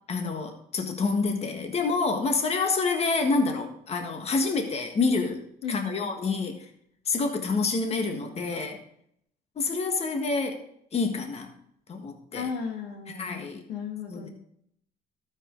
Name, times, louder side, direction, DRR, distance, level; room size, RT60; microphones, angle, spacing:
voice 1, 0.1-5.4 5.7-6.6 7.0-8.8 9.5-10.6 10.9-11.5 11.9-12.5 13.1-13.6 14.1-14.3, left 4 dB, 40° left, 4 dB, 1.7 m, -27 dB
voice 2, 5.6-6.0 12.3-13.3 13.7-14.3, left 5 dB, 90° left, 4 dB, 1.8 m, -34 dB
13.0 x 7.5 x 3.9 m, 0.70 s
cardioid pair, 110°, 17 cm